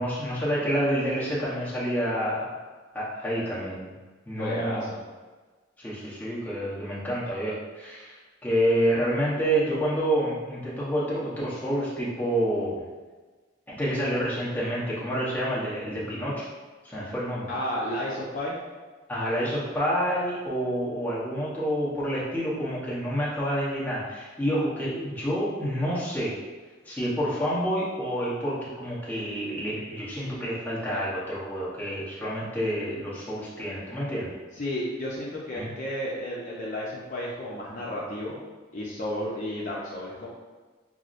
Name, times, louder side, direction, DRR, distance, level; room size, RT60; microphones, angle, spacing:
voice 1, 0.0-2.6 2.9-3.9 4.3-4.8 5.8-12.8 13.7-16.5 16.8-17.5 19.1-26.4 26.9-34.3 35.5-35.7, equal, 10° left, -8 dB, 0.9 m, -28 dB
voice 2, 4.3-5.0 17.5-18.6 34.5-38.4 38.7-40.3, left 1 dB, 40° left, -6 dB, 0.6 m, -32 dB
5.9 x 2.0 x 2.5 m, 1.3 s
head